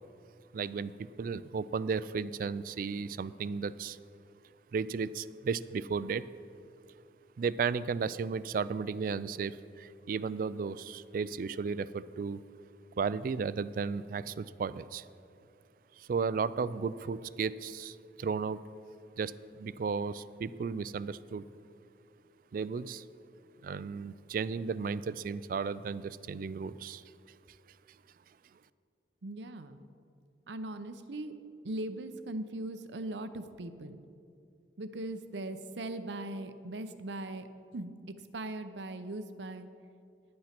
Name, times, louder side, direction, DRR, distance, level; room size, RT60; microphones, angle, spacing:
voice 1, 0.5-4.0 4.7-6.2 7.4-12.4 13.0-15.1 16.0-18.6 19.2-21.5 22.5-23.0 23.6-27.0, right 5 dB, 50° right, 16 dB, 0.3 m, -34 dB
voice 2, 29.2-29.8 30.5-31.3 31.6-34.0 34.8-37.5 37.7-39.7, right 1 dB, 90° right, 11 dB, 0.7 m, -39 dB
10.5 x 8.6 x 5.9 m, 2.5 s
head